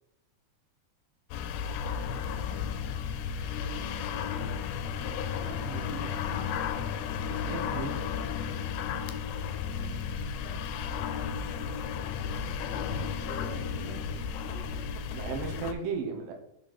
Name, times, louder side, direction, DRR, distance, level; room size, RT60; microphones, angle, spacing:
sound 1, 1.3-15.7, left 7 dB, 85° left, 2.0 m, -33 dB
voice 1, 1.4-1.8 10.3-10.8 12.7-15.5, right 3 dB, 90° right, 3 dB, 2.8 m, -48 dB
voice 2, 5.0-6.1 7.3-8.0 11.6-11.8 15.1-16.3, right 5 dB, 60° right, 3 dB, 1.9 m, -37 dB
6.2 x 5.4 x 4.2 m, 0.78 s
omnidirectional pair, 3.6 m